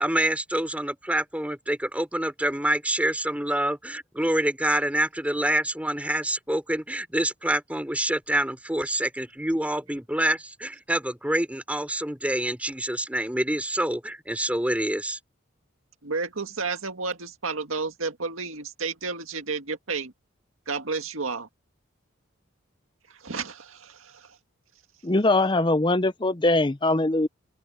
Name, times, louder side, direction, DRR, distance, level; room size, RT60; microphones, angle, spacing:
voice 1, 0.0-15.2, right 1 dB, 5° right, 3.9 m, -26 dB
voice 2, 16.0-20.1 20.7-21.5 23.1-24.4, right 4 dB, 85° right, 2.0 m, -31 dB
voice 3, 25.0-27.3, left 2 dB, 25° left, 0.7 m, -22 dB
open air
head